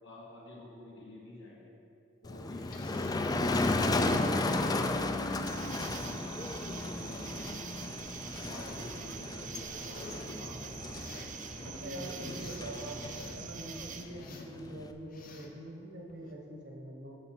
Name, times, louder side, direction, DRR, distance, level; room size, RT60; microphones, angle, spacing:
voice 1, 0.0-1.7 2.2-5.2 5.8-8.1 8.5-11.1 11.6-13.4, left 1 dB, 80° left, -4 dB, 1.9 m, -49 dB
Motor vehicle (road), 2.2-14.9, left 2 dB, 20° left, 0.4 m, -34 dB
sound 1, 2.4-3.2 3.9-4.7 5.7-5.8 6.5-7.4 8.1-8.8 9.3-10.3 10.8-11.4 11.9-12.7 13.0-13.4 14.1-14.5 15.0-15.6 16.1-16.3, left 3 dB, 50° left, 0.8 m, -51 dB
sound 2, 5.5-14.0, right 5 dB, 45° right, 0.5 m, -44 dB
voice 2, 11.6-17.2, right 1 dB, 65° right, -1 dB, 1.2 m, -44 dB
7.1 x 6.7 x 5.9 m, 2.7 s
head